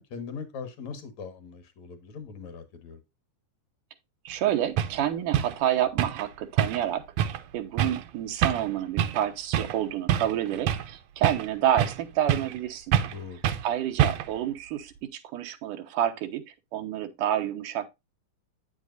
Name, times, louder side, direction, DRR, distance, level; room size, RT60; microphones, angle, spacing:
voice 1, 0.0-3.0 13.1-13.5, left 5 dB, 65° left, 2.5 m, -40 dB
voice 2, 4.2-13.0 13.6-16.4 16.7-17.9, right 11 dB, 90° right, 2.6 m, -29 dB
sound 1, 4.3-4.4 4.8-5.0 5.3-5.6 6.0-6.3 6.6-6.9 7.2-7.4 7.8-8.0 8.4-8.7 9.0-9.2 9.5-9.8 10.1-10.9 11.2-12.0 12.3-12.6 12.9-13.2 13.4-13.7 14.0-14.4, right 10 dB, 75° right, 1.7 m, -26 dB
8.8 x 7.8 x 2.6 m
omnidirectional pair, 3.6 m